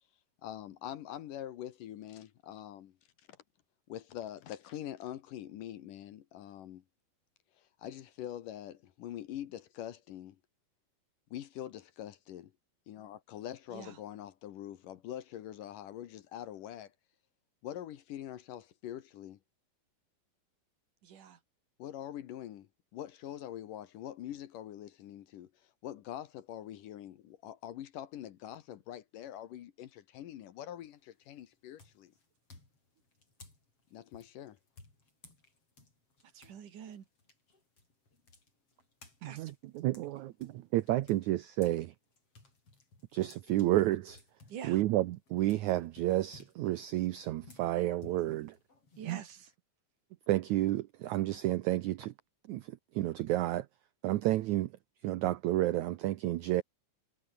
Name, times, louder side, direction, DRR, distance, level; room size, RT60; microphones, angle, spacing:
voice 1, 0.4-3.0 3.3-3.4 3.9-6.8 7.6-10.4 11.3-12.5 12.9-16.9 17.6-19.4 21.8-25.5 25.8-32.1 33.9-34.6, left 11 dB, 70° left, 2.6 m, -44 dB
voice 2, 21.0-21.4 36.3-37.1 39.2-39.5 44.5-44.8 49.0-49.5, right 8 dB, 60° right, 3.6 m, -46 dB
sound 1, 30.9-31.2 31.8-36.6 36.9-41.8 42.1-49.5, left 3 dB, 35° left, 7.8 m, -58 dB
voice 3, 39.2-41.9 43.1-44.2 44.6-48.5 49.1-49.2 50.3-52.1 52.5-52.7 52.9-53.6 54.0-54.7 55.0-56.6, right 15 dB, 80° right, 1.7 m, -31 dB
omnidirectional pair, 4.4 m